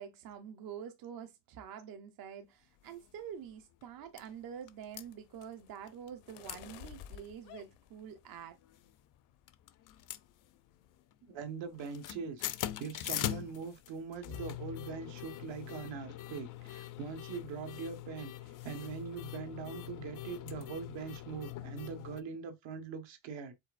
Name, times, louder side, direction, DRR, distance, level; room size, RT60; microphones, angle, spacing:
voice 1, 0.0-8.6, right 8 dB, 45° right, 0.6 m, -47 dB
sound 1, 2.9-3.1 3.5-3.6 3.8-4.3 4.7-5.0 5.9-6.2 6.4-6.6 6.9-7.0 7.5-7.9 8.6-9.2 9.5-10.9 11.1-11.4 11.7-22.2, left 13 dB, 45° left, 0.4 m, -42 dB
sound 2, 4.3-8.7 9.1-9.5 9.8-10.1 10.4-11.0, left 11 dB, 90° left, 0.9 m, -54 dB
voice 2, 11.2-12.4 12.8-23.5, right 6 dB, 65° right, 1.3 m, -42 dB
5.5 x 4.1 x 2.4 m
cardioid pair, 160°, 49 cm